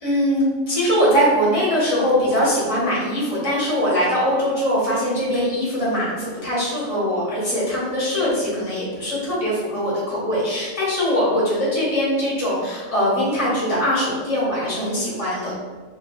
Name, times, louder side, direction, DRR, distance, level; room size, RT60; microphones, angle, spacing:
voice 1, 0.0-15.5, equal, 30° left, -7 dB, 0.8 m, -21 dB
2.2 x 2.2 x 2.8 m, 1.4 s
omnidirectional pair, 1.3 m